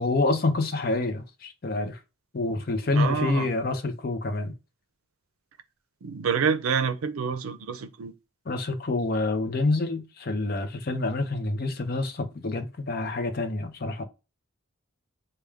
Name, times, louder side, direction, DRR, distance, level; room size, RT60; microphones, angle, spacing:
voice 1, 0.0-2.0 2.3-4.5 8.5-14.1, left 2 dB, 45° left, 0.5 m, -27 dB
voice 2, 2.9-3.5 6.0-8.1, right 6 dB, 90° right, 0.5 m, -27 dB
3.4 x 2.2 x 3.3 m
head